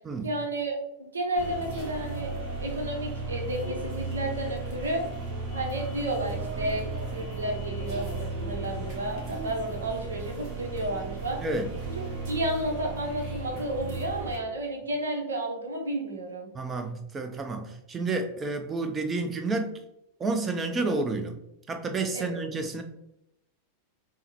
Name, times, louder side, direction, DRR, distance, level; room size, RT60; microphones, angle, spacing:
voice 1, 0.2-2.3 2.6-5.0 5.5-11.4 12.0-16.5 22.1-22.4, right 1 dB, 70° right, 2 dB, 0.8 m, -32 dB
sound 1, 1.4-14.4, right 3 dB, 40° right, 1.2 m, -35 dB
voice 2, 11.4-11.7 16.5-19.8 20.2-21.4 21.7-22.8, right 3 dB, 20° right, 7 dB, 0.5 m, -30 dB
5.5 x 2.1 x 2.9 m, 0.83 s
figure-of-eight pair, 90°, 0 cm